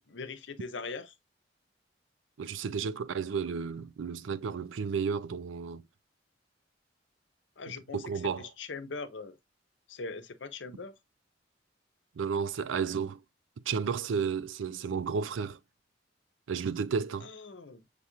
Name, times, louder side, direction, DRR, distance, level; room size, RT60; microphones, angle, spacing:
voice 1, 0.1-1.1 7.6-8.0 8.4-9.4 9.9-11.0 17.2-17.8, left 4 dB, 75° left, 0.7 m, -41 dB
voice 2, 2.4-5.8 7.9-8.5 12.2-13.2 13.7-15.6 16.5-17.3, right 6 dB, 90° right, 0.4 m, -32 dB
6.7 x 2.4 x 2.8 m
head